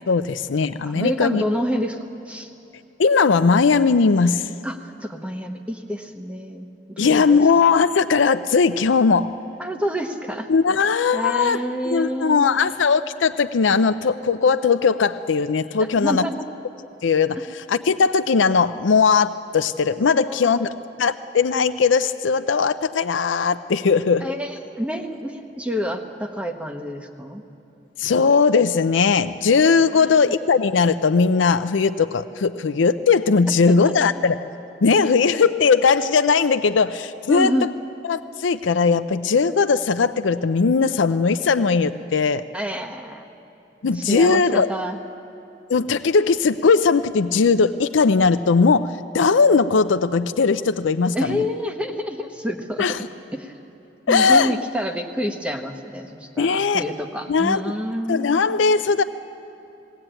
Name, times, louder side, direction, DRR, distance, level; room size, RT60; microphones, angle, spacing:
voice 1, 0.1-1.4 3.0-4.5 7.0-9.3 10.5-16.2 17.0-20.7 21.0-24.3 28.0-34.4 34.8-37.7 38.0-42.4 43.8-44.7 45.7-51.4 52.8-53.1 54.1-54.5 56.4-56.8 57.3-57.6 58.1-59.0, left 5 dB, 90° left, 10 dB, 0.5 m, -19 dB
voice 2, 0.9-2.0 2.3-2.5 4.6-6.7 7.0-7.5 9.6-10.5 11.1-12.7 15.9-16.5 20.3-20.6 24.2-27.4 29.9-30.2 33.7-34.1 37.3-37.7 42.5-43.2 43.9-45.0 51.1-52.8 53.3-53.5 54.1-58.4, equal, 5° right, 5 dB, 1.1 m, -28 dB
20.0 x 18.0 x 9.0 m, 3.0 s
head